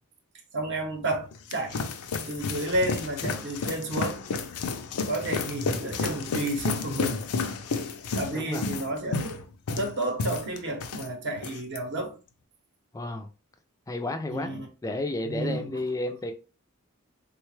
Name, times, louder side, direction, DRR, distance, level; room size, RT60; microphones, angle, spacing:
voice 1, 0.5-1.8 2.3-4.1 5.1-7.2 8.1-9.3 9.7-12.2 14.3-14.7 15.2-15.7, right 1 dB, 55° right, 0.8 m, -31 dB
sound 1, 1.1-11.1 11.4-11.8, left 4 dB, 85° left, 0.5 m, -32 dB
voice 2, 8.3-8.7 12.9-13.3 13.9-14.5 14.8-16.3, left 2 dB, 15° left, 0.3 m, -31 dB
3.6 x 2.2 x 3.1 m
head